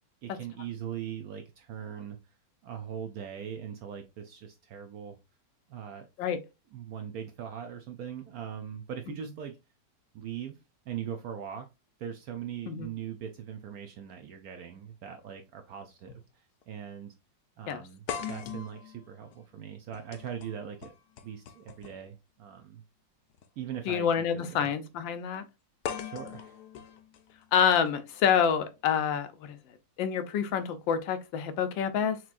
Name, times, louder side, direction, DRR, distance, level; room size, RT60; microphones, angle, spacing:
voice 1, 0.2-2.2 2.6-5.2 5.7-6.1 6.7-9.6 10.1-10.6 10.9-11.7 12.0-17.1 17.6-20.9 21.2-22.8 23.6-24.7 26.0-26.6, right 9 dB, 70° right, 0.8 m, -40 dB
sound 1, 14.9-15.0 16.1-16.3 16.6-16.7 18.1-22.1 23.3-23.5 25.8-27.9, left 8 dB, 70° left, 1.0 m, -41 dB
voice 2, 23.9-25.4 27.5-29.6 30.0-32.2, left 8 dB, 90° left, 1.4 m, -27 dB
6.0 x 2.9 x 2.5 m
omnidirectional pair, 2.0 m